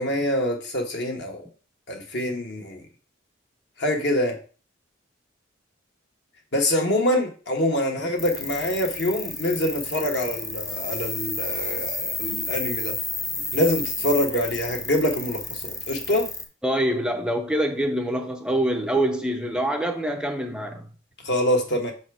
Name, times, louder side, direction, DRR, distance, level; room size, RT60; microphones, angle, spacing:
voice 1, 0.0-1.4 1.9-2.8 3.8-4.4 6.5-12.9 13.5-16.3 21.2-21.9, left 1 dB, 60° left, 1.4 m, -25 dB
sound 1, 8.2-16.4, left 2 dB, 15° left, 0.9 m, -31 dB
voice 2, 16.6-20.9, right 1 dB, 5° right, 0.4 m, -25 dB
6.1 x 4.2 x 4.7 m
head